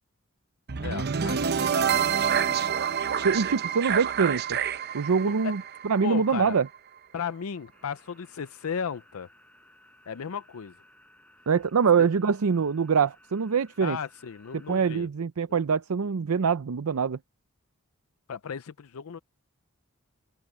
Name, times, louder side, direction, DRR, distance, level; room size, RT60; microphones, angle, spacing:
sound 1, 0.7-6.8, right 7 dB, 50° right, 0.7 m, -27 dB
voice 1, 0.8-2.7 5.2-5.5 6.0-6.6 7.1-9.3 10.1-10.7 12.0-12.1 13.8-15.1 15.5-15.6 18.3-19.2, left 6 dB, 80° left, 0.5 m, -36 dB
voice 2, 3.2-4.6 4.9-6.7 11.5-14.0 14.5-17.2, right 6 dB, 85° right, 0.5 m, -24 dB
sound 2, 7.7-15.0, left 1 dB, 5° left, 7.1 m, -59 dB
open air
head